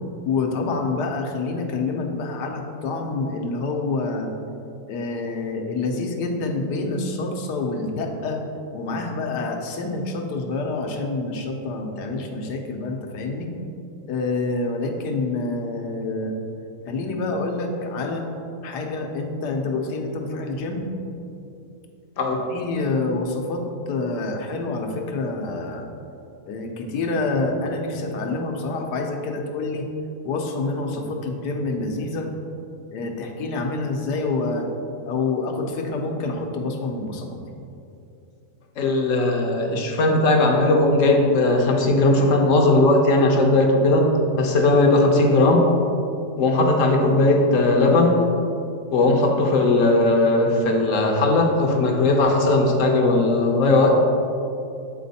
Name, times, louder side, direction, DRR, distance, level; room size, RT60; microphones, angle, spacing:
voice 1, 0.3-4.3 4.9-8.4 8.7-13.5 14.1-16.3 16.9-18.3 18.6-20.9 22.5-25.8 26.5-29.9 30.2-32.3 32.9-34.7 35.1-37.4, left 3 dB, 85° left, 2 dB, 1.3 m, -27 dB
voice 2, 38.8-45.7 46.4-48.2 48.9-54.0, left 2 dB, 60° left, 2 dB, 1.0 m, -18 dB
8.3 x 4.2 x 4.1 m, 2.7 s
omnidirectional pair, 1.7 m